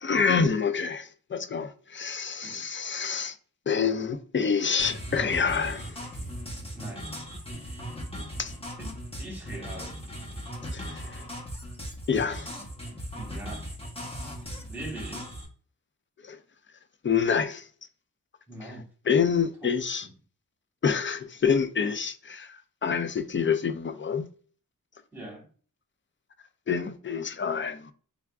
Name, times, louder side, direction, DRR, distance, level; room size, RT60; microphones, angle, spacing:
voice 1, 0.0-3.4 3.7-6.1 8.4-8.5 10.7-11.2 12.1-12.5 16.2-16.4 17.0-17.7 18.6-18.7 19.1-20.1 20.8-24.2 26.7-27.9, left 6 dB, 35° left, 0.4 m, -27 dB
sound 1, 4.8-15.5, equal, 15° left, 0.9 m, -38 dB
voice 2, 6.7-7.1 8.8-10.0 13.1-13.7 14.5-15.3 18.5-18.9 19.6-19.7 21.7-21.9 25.1-25.5, right 1 dB, 5° right, 1.3 m, -41 dB
3.5 x 3.4 x 2.3 m
wide cardioid pair, 80°, 37 cm